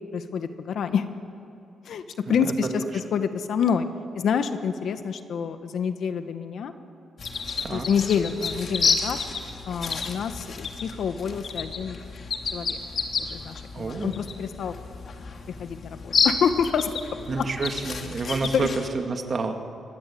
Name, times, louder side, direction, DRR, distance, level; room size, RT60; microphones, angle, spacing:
voice 1, 0.1-1.1 1.8-2.0 2.3-3.9 4.1-6.7 7.7-9.2 9.7-12.0 12.5-12.8 13.3-14.7 15.6-16.9 17.4-17.5 18.5-18.7, left 7 dB, 70° left, 9 dB, 1.5 m, -27 dB
sound 1, 7.2-18.9, left 5 dB, 50° left, 2.5 m, -30 dB
voice 2, 13.7-14.2 17.3-19.6, right 4 dB, 40° right, 5 dB, 2.2 m, -29 dB
24.5 x 20.5 x 8.7 m, 2.7 s
cardioid pair, 110°, 0 cm